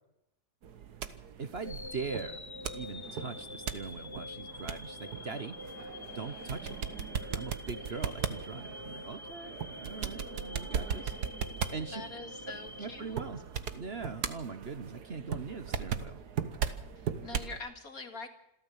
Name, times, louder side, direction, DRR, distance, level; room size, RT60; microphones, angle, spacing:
sound 1, 0.6-17.6, right 7 dB, 85° right, 1.8 m, -38 dB
voice 1, 1.4-2.4 2.7-5.6 6.1-6.8 7.3-11.1 11.7-12.0 12.8-13.4 13.7-16.2, right 4 dB, 45° right, 10 dB, 1.3 m, -41 dB
sound 2, 1.6-13.8, left 3 dB, 25° left, 0.6 m, -46 dB
voice 2, 11.9-13.2 17.0-18.3, left 3 dB, 65° left, 5 dB, 2.9 m, -44 dB
27.0 x 13.5 x 7.4 m, 0.86 s
omnidirectional pair, 1.6 m